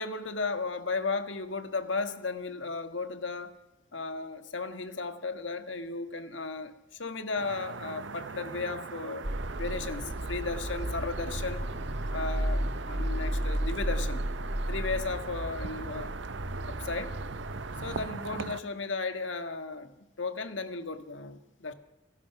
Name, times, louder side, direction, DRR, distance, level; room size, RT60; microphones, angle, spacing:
voice 1, 0.0-3.6 3.9-6.7 7.0-9.2 9.6-11.6 12.1-14.3 14.7-16.1 16.7-17.2 17.8-21.7, left 4 dB, 90° left, 1.7 m, -35 dB
sound 1, 7.4-18.6, right 4 dB, 90° right, 0.8 m, -41 dB
sound 2, 9.2-18.1, right 1 dB, 65° right, 1.9 m, -33 dB
30.0 x 17.5 x 6.0 m
head